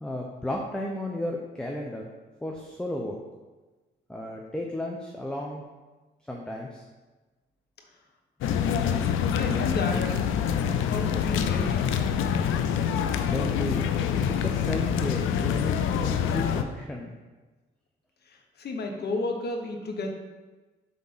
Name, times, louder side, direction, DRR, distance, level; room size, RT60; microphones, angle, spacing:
voice 1, 0.0-2.0 2.4-3.2 4.1-5.6 6.3-6.8 13.2-13.9 14.4-15.8 16.1-17.1, left 1 dB, 5° left, 0 dB, 0.8 m, -33 dB
sound 1, 8.4-16.6, left 8 dB, 90° left, 0.5 m, -26 dB
voice 2, 9.3-10.2 10.9-11.9 18.3-20.1, left 2 dB, 55° left, 3 dB, 1.3 m, -32 dB
7.9 x 3.7 x 5.7 m, 1.2 s
cardioid pair, 90°, 20 cm